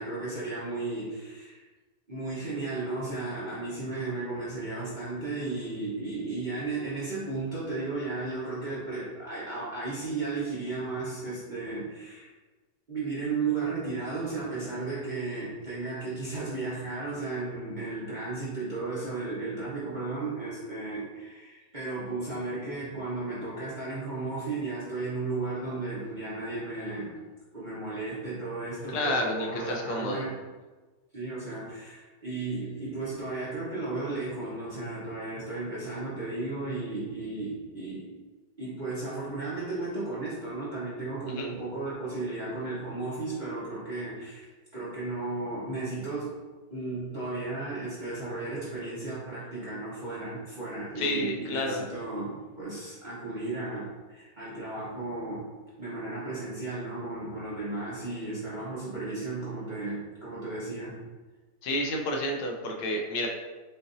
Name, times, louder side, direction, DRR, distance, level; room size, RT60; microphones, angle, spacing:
voice 1, 0.0-1.6 2.1-12.3 12.9-27.2 27.5-30.4 31.1-38.1 38.6-44.5 44.7-46.3 46.7-55.5 55.8-61.0, right 3 dB, 30° right, -10 dB, 0.9 m, -34 dB
voice 2, 28.9-30.3 41.3-41.5 50.9-51.9 61.6-63.3, left 1 dB, 75° left, 1 dB, 1.2 m, -30 dB
5.8 x 2.6 x 2.6 m, 1.3 s
omnidirectional pair, 2.0 m